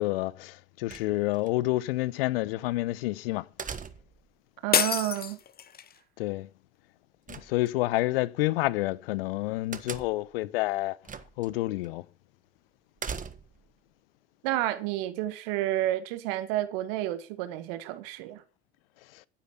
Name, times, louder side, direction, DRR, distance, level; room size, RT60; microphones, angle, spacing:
voice 1, 0.0-3.5 6.2-6.5 7.3-11.0 11.4-12.0, left 18 dB, 70° left, 0.8 m, -29 dB
sound 1, 0.9-1.5 3.6-4.3 7.3-8.0 9.7-10.3 11.0-11.5 11.8-11.9 13.0-13.7, right 6 dB, 25° right, 1.5 m, -39 dB
voice 2, 4.6-5.4 14.4-18.4, right 14 dB, 65° right, 1.6 m, -30 dB
sound 2, 4.7-6.0, left 8 dB, 30° left, 1.0 m, -27 dB
11.5 x 10.5 x 5.8 m
hypercardioid pair, 70°, 30 cm